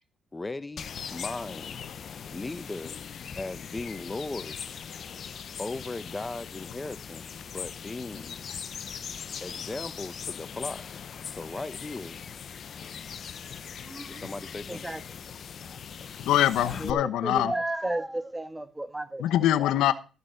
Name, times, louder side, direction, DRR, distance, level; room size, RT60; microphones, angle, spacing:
voice 1, 0.3-1.8 2.3-3.0 3.3-4.8 5.6-8.4 9.4-10.8 11.3-12.2 14.1-14.9, left 2 dB, 20° left, 0.7 m, -37 dB
sound 1, 0.8-16.9, left 7 dB, 55° left, 0.7 m, -40 dB
voice 2, 13.8-14.3 14.7-15.0 15.7-15.8 16.6-19.2, right 1 dB, 10° right, 1.3 m, -33 dB
voice 3, 16.2-17.5 19.2-19.9, left 12 dB, 85° left, 0.9 m, -23 dB
13.5 x 6.8 x 6.4 m
cardioid pair, 90°, 0 cm